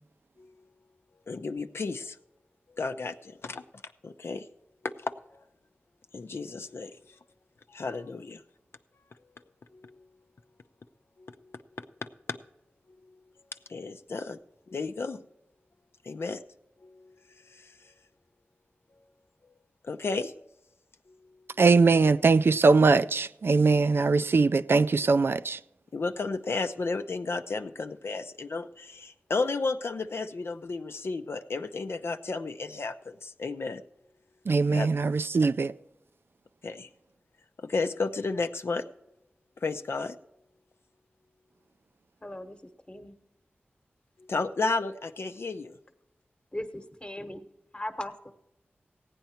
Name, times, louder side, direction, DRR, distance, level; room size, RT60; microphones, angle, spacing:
voice 1, 1.3-2.2 2.8-3.6 4.0-4.5 4.8-5.1 6.1-7.0 7.7-8.4 9.7-10.0 11.2-11.8 13.7-14.4 14.7-15.2 16.0-16.4 16.8-17.1 17.5-17.9 19.8-20.3 25.9-33.8 34.7-34.9 36.6-36.9 37.6-38.8 39.6-40.2 44.2-45.7, left 3 dB, 70° left, 0.6 m, -33 dB
voice 2, 21.6-25.6 34.5-35.7, right 4 dB, 65° right, 0.4 m, -21 dB
voice 3, 42.2-42.6 42.9-43.2 46.5-47.5 47.7-48.3, left 1 dB, 25° left, 1.2 m, -38 dB
15.5 x 9.2 x 4.3 m
cardioid pair, 50°, 4 cm